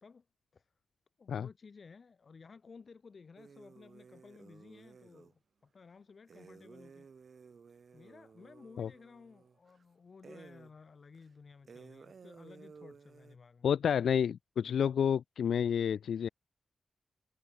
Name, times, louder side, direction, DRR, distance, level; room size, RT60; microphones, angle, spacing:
voice 1, 1.2-7.1 7.9-13.7, left 5 dB, 50° left, 1.7 m, -56 dB
sound 1, 3.4-5.3 6.3-9.8 10.2-10.8 11.1-11.2 11.7-13.4, right 5 dB, 55° right, 4.9 m, -56 dB
voice 2, 13.6-16.3, left 8 dB, 90° left, 0.4 m, -30 dB
wide cardioid pair, 105°, 0 cm